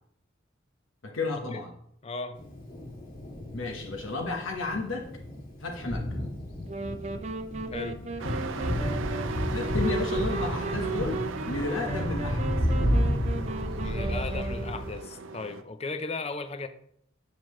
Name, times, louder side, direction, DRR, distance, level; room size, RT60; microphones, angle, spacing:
voice 1, 1.0-1.7 3.5-5.1 5.6-6.2 9.5-12.4, left 3 dB, 90° left, 1.1 m, -32 dB
voice 2, 2.0-2.5 7.7-8.0 13.8-16.7, left 3 dB, 30° left, 0.5 m, -36 dB
Thunder, 2.3-14.9, equal, 50° left, 1.8 m, -32 dB
sound 1, 6.7-15.1, right 4 dB, 35° right, 0.5 m, -37 dB
Truck, 8.2-15.6, right 4 dB, 85° right, 0.5 m, -37 dB
7.4 x 6.7 x 3.1 m
head